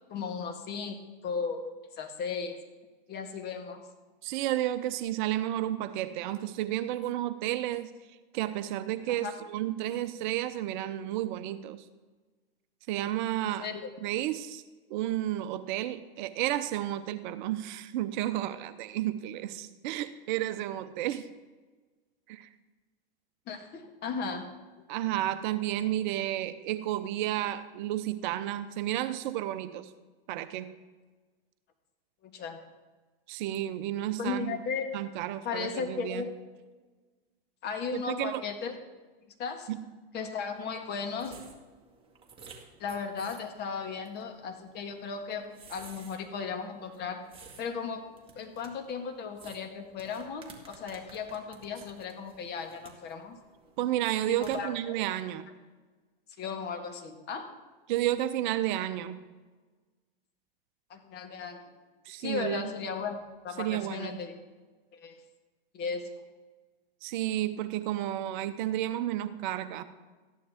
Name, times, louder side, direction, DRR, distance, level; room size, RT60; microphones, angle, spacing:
voice 1, 0.1-1.0 1.2-2.6 3.1-3.8 9.1-9.3 13.4-13.9 23.5-24.5 32.2-32.6 34.2-34.9 35.4-36.3 37.6-38.8 39.4-39.7 40.1-41.4 42.8-47.2 47.6-48.1 48.4-53.4 54.3-55.0 56.4-57.5 60.9-61.6 62.2-64.4 64.9-65.2 65.7-66.1, left 5 dB, 35° left, 5 dB, 1.6 m, -36 dB
voice 2, 4.2-7.9 8.3-11.8 12.9-13.7 14.0-14.6 14.9-21.3 22.3-22.5 24.9-29.9 30.3-30.7 33.3-34.6 34.9-36.3 37.9-38.4 39.7-39.8 53.8-55.5 57.9-59.2 62.1-62.7 63.6-64.2 67.0-69.8, right 13 dB, 55° right, 11 dB, 0.8 m, -32 dB
sound 1, 40.5-54.6, right 5 dB, 20° right, 1.9 m, -55 dB
14.0 x 11.0 x 3.6 m, 1.3 s
hypercardioid pair, 125°, 30 cm